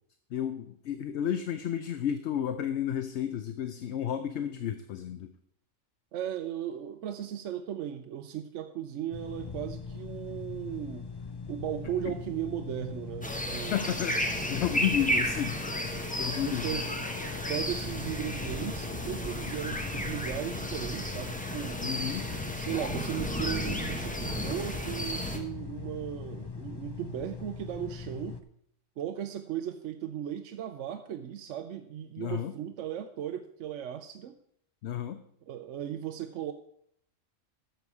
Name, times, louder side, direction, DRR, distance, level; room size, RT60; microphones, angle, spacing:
voice 1, 0.3-5.3 12.1-12.2 13.7-14.2 14.5-15.6 16.2-16.8 21.8-22.3 32.2-32.5 34.8-35.2, left 10 dB, 65° left, 10 dB, 0.8 m, -32 dB
voice 2, 6.1-11.1 11.5-13.7 16.3-17.1 17.5-21.8 22.5-28.4 29.0-34.3 35.5-36.5, right 10 dB, 70° right, 7 dB, 0.9 m, -36 dB
sound 1, 9.1-28.4, left 5 dB, 40° left, 0.3 m, -41 dB
sound 2, 13.2-25.4, equal, 5° left, 0.9 m, -33 dB
12.5 x 7.0 x 4.7 m, 0.70 s
omnidirectional pair, 1.3 m